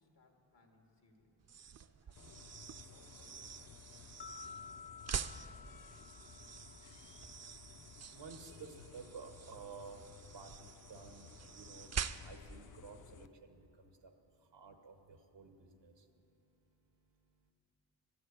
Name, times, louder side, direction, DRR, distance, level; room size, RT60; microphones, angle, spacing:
voice 1, 0.0-1.6 2.0-5.1, left 2 dB, 90° left, 2 dB, 1.7 m, -68 dB
sound 1, 1.4-12.6, right 7 dB, 40° right, 0.4 m, -46 dB
voice 2, 1.7-2.1 4.3-4.4 5.1-17.5, right 5 dB, 85° right, 6 dB, 1.1 m, -55 dB
sound 2, 2.2-13.3, left 7 dB, 50° left, 0.5 m, -57 dB
sound 3, 4.2-7.3, left 5 dB, 70° left, 1.0 m, -53 dB
13.0 x 7.6 x 9.5 m, 2.9 s
wide cardioid pair, 75°, 41 cm